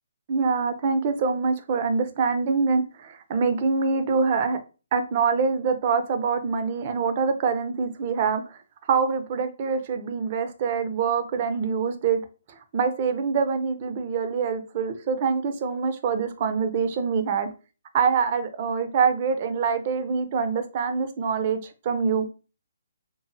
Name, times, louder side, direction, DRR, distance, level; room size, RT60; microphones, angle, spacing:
voice 1, 0.3-4.6 4.9-8.6 8.9-12.2 12.7-17.5 17.9-21.6 21.8-22.3, right 5 dB, 40° right, 8 dB, 0.5 m, -25 dB
3.0 x 2.1 x 2.6 m, 0.33 s
hypercardioid pair, 145°, 0 cm